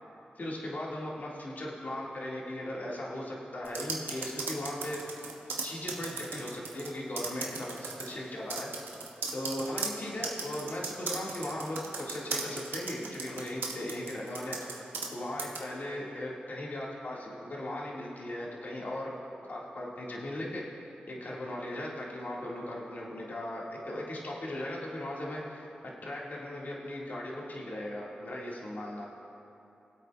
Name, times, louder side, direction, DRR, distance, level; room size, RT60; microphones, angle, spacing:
voice 1, 0.4-5.1 5.6-8.7 9.3-19.1 19.5-20.6 21.1-25.7 26.0-29.0, left 1 dB, 55° left, -4 dB, 2.0 m, -38 dB
sound 1, 3.7-6.9 7.2-8.1 8.5-15.1 15.4-15.6, right 4 dB, 90° right, 0.9 m, -37 dB
20.0 x 8.1 x 2.4 m, 2.8 s
cardioid pair, 45°, 3 cm